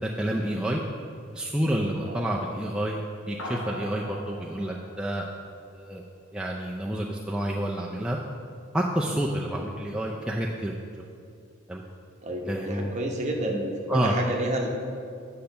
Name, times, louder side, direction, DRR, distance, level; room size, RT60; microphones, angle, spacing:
voice 1, 0.0-0.8 1.3-5.3 5.7-6.0 6.3-8.2 8.7-10.7 11.7-11.8 12.4-12.9 13.9-14.1, right 1 dB, 5° right, -3 dB, 0.4 m, -29 dB
sound 1, 3.4-6.1, left 1 dB, 70° left, 1.2 m, -41 dB
voice 2, 12.2-14.7, right 1 dB, 35° right, 1 dB, 0.9 m, -30 dB
8.6 x 5.7 x 5.3 m, 2.4 s
head